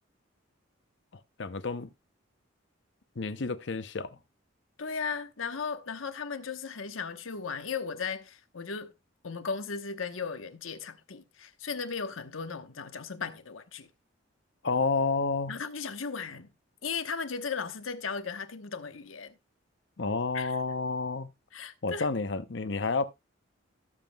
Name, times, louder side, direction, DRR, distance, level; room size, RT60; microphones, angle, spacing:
voice 1, 1.4-1.9 3.2-4.2 14.6-15.5 20.0-21.3 21.8-23.1, left 4 dB, 60° left, 0.7 m, -30 dB
voice 2, 4.8-8.9 9.2-13.9 15.5-16.5 16.8-19.4 20.3-20.6 21.5-22.1, left 5 dB, 90° left, 1.1 m, -36 dB
17.0 x 7.4 x 2.3 m
head